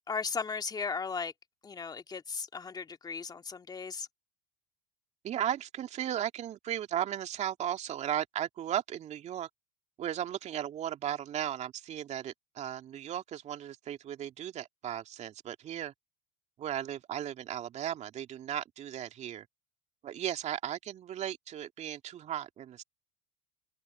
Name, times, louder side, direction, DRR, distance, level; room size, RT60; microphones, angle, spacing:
voice 1, 0.1-1.3 1.6-4.1, left 5 dB, 25° left, 2.1 m, -36 dB
voice 2, 5.2-9.5 10.0-15.9 16.6-19.5 20.0-22.8, right 10 dB, 40° right, 2.5 m, -36 dB
hypercardioid pair, 80°, 17 cm